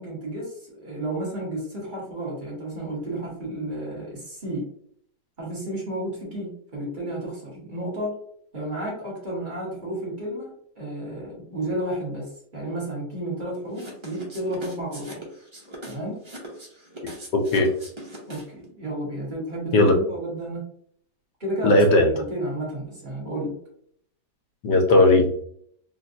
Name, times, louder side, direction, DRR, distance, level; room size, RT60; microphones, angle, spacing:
voice 1, 0.0-4.7 5.4-8.2 8.5-15.2 15.8-16.2 18.3-20.6 21.4-21.8 22.1-23.6, right 1 dB, 30° right, -5 dB, 1.4 m, -32 dB
sound 1, 13.7-18.6, right 1 dB, 45° right, 0.3 m, -41 dB
voice 2, 17.3-17.7 19.7-20.0 21.6-22.1 24.6-25.4, left 2 dB, 85° left, 4 dB, 1.3 m, -17 dB
3.6 x 2.5 x 2.6 m, 0.65 s
omnidirectional pair, 1.8 m